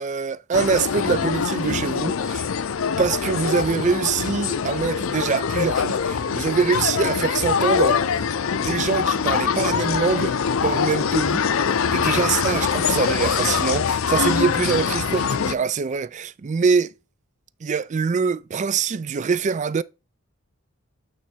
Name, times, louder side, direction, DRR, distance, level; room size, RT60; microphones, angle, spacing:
voice 1, 0.0-2.5 3.0-8.2 8.6-11.4 11.7-16.9 17.6-19.8, right 5 dB, 35° right, 0.4 m, -24 dB
sound 1, 0.5-15.5, left 6 dB, 80° left, 0.5 m, -23 dB
8.6 x 3.3 x 4.3 m
head